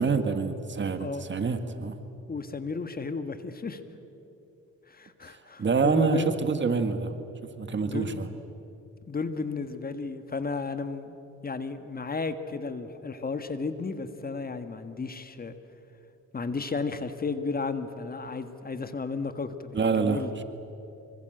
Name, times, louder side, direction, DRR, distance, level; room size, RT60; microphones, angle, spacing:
voice 1, 0.0-2.0 5.3-7.1 7.4-8.3 19.7-20.4, right 5 dB, 40° right, 9 dB, 1.7 m, -27 dB
voice 2, 2.3-3.8 4.9-6.4 7.8-8.4 9.1-11.2 11.4-15.6 16.3-20.3, left 4 dB, 30° left, 10 dB, 1.6 m, -33 dB
25.0 x 24.5 x 7.9 m, 2.9 s
cardioid pair, 90°, 30 cm